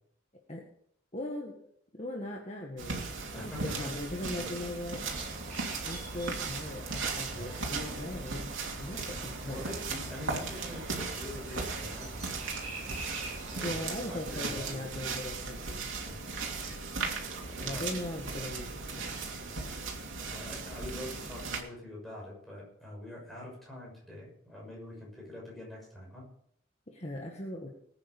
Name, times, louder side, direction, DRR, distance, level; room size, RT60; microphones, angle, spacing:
voice 1, 1.1-1.5 1.9-5.2 5.7-8.5 8.8-9.7 13.6-15.8 17.6-19.1 19.6-19.8 26.9-27.7, left 1 dB, 35° left, 0 dB, 1.7 m, -39 dB
sound 1, 2.8-21.6, right 4 dB, 85° right, 2.8 m, -37 dB
voice 2, 3.3-3.9 4.4-4.6 7.3-7.5 9.5-12.2 13.5-15.1 16.0-16.2 17.7-17.9 20.3-26.3, left 1 dB, ahead, -3 dB, 6.3 m, -44 dB
sound 2, 5.0-13.7, right 2 dB, 35° right, 7.6 m, -46 dB
19.5 x 9.1 x 5.4 m, 0.67 s
head